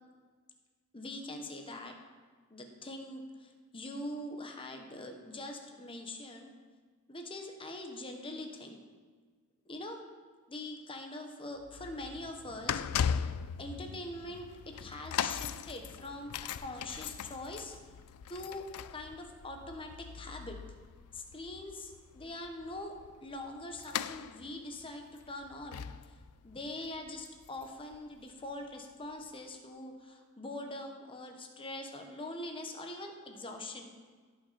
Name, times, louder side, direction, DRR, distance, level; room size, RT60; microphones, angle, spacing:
voice 1, 0.9-1.9 2.5-6.5 7.1-8.8 9.7-10.0 10.5-12.8 13.6-14.5 14.8-16.3 16.6-17.7 18.3-18.6 18.9-19.9 20.1-20.5 21.1-22.9 23.2-25.8 26.4-33.9, left 1 dB, 25° left, 3 dB, 1.1 m, -43 dB
sound 1, 11.6-28.6 29.2-29.3, left 8 dB, 85° left, 0.4 m, -40 dB
17.0 x 6.1 x 4.2 m, 1.5 s
head